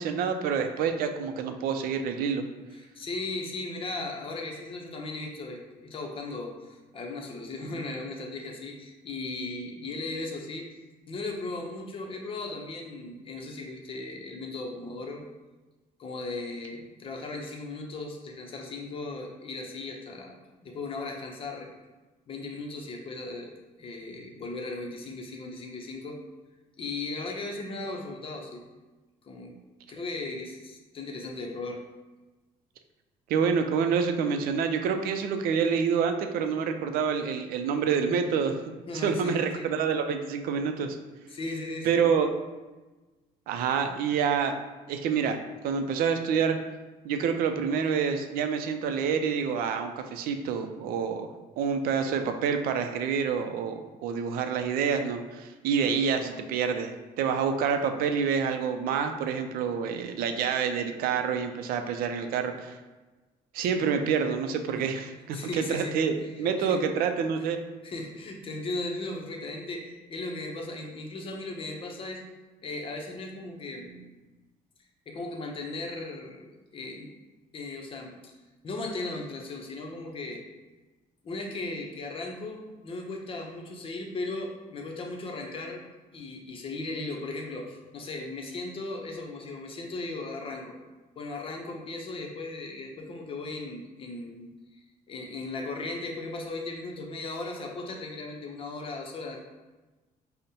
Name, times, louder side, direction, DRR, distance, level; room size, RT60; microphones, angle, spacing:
voice 1, 0.0-2.4 33.3-38.6 39.0-41.0 41.8-42.3 43.5-44.5 44.9-45.4 45.6-46.6 47.0-51.3 51.6-62.8 63.5-67.6, right 6 dB, 75° right, 7 dB, 0.4 m, -27 dB
voice 2, 2.7-10.7 11.1-15.2 16.0-20.4 20.6-21.7 22.3-26.2 26.8-28.6 29.2-29.5 29.9-31.8 38.9-39.7 41.3-42.1 65.3-66.8 67.8-72.2 72.6-74.1 75.1-77.1 77.5-78.3 78.6-80.4 81.2-85.8 86.1-90.8 91.2-94.8 95.1-99.4, left 2 dB, 35° left, 1 dB, 0.6 m, -37 dB
5.1 x 2.1 x 2.8 m, 1.2 s
cardioid pair, 115°, 15 cm